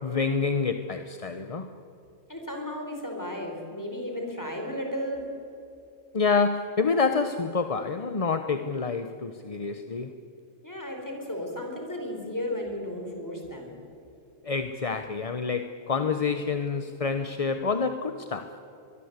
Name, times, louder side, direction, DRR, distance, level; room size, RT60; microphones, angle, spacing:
voice 1, 0.0-1.7 6.1-10.1 14.4-18.6, left 5 dB, 30° left, 8 dB, 0.8 m, -27 dB
voice 2, 2.3-5.2 10.6-13.8, left 1 dB, 15° left, 2 dB, 4.5 m, -34 dB
23.5 x 22.0 x 8.2 m, 2.8 s
omnidirectional pair, 1.3 m